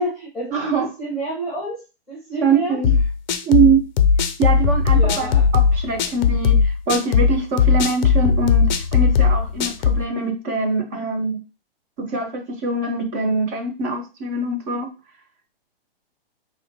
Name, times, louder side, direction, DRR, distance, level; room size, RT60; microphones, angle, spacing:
voice 1, 0.0-1.8 2.1-2.8 4.9-5.5, right 1 dB, ahead, 1.1 m, -28 dB
voice 2, 0.5-0.9 2.4-2.9 3.4-3.8 4.4-11.4 12.0-14.9, right 4 dB, 15° right, 0.4 m, -23 dB
sound 1, 2.8-10.0, left 6 dB, 50° left, 0.5 m, -17 dB
5.0 x 2.2 x 2.8 m
hypercardioid pair, 150°, 30 cm